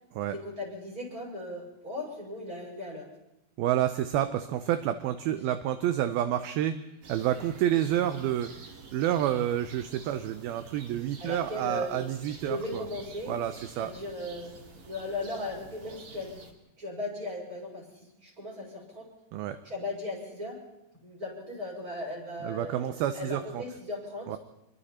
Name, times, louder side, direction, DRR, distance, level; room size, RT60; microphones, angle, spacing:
voice 1, 0.3-3.1 11.2-12.0 12.4-13.3 13.8-14.5 14.8-16.4 16.8-19.1 19.6-20.6 21.0-24.4, left 1 dB, 20° right, -2 dB, 6.7 m, -37 dB
voice 2, 3.6-6.7 7.1-8.5 8.9-12.8 13.3-13.9 19.3-19.6 22.4-23.6 24.3-24.4, right 11 dB, 75° right, 10 dB, 2.5 m, -29 dB
sound 1, 7.0-16.5, right 3 dB, 50° right, 3.3 m, -49 dB
27.0 x 23.0 x 4.3 m, 0.91 s
omnidirectional pair, 4.7 m